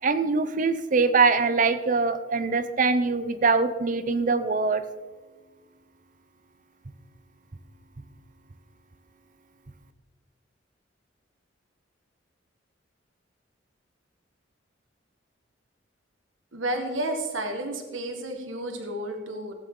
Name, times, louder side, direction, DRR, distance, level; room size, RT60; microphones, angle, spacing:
voice 1, 0.0-4.8, right 4 dB, 40° right, 11 dB, 0.6 m, -23 dB
voice 2, 16.5-19.5, right 1 dB, 85° right, 4 dB, 1.7 m, -31 dB
17.0 x 8.9 x 3.8 m, 1.3 s
head